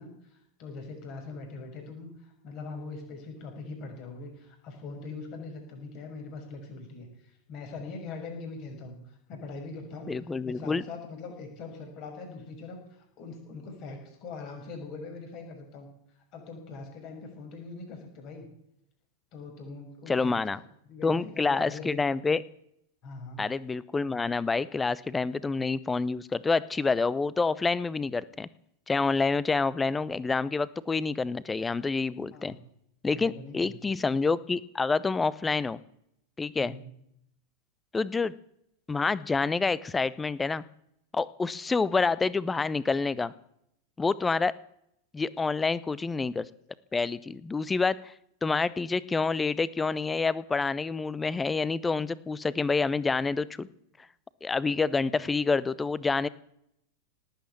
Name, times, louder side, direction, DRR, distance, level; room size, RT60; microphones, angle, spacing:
voice 1, 0.0-10.1 10.4-15.9 16.3-18.5 19.3-22.1 23.0-23.5 32.3-32.6 33.1-34.0 36.6-36.9, left 3 dB, 40° left, 3 dB, 5.9 m, -42 dB
voice 2, 10.1-10.8 20.1-20.6 21.0-22.4 23.4-28.5 28.9-32.5 33.0-35.8 36.4-36.7 37.9-38.3 38.9-40.7 41.1-43.3 44.0-44.5 45.1-46.4 46.9-48.1 48.4-53.7 54.4-56.3, left 4 dB, 15° left, 20 dB, 0.7 m, -28 dB
18.5 x 8.5 x 9.2 m, 0.75 s
figure-of-eight pair, 90°, 0 cm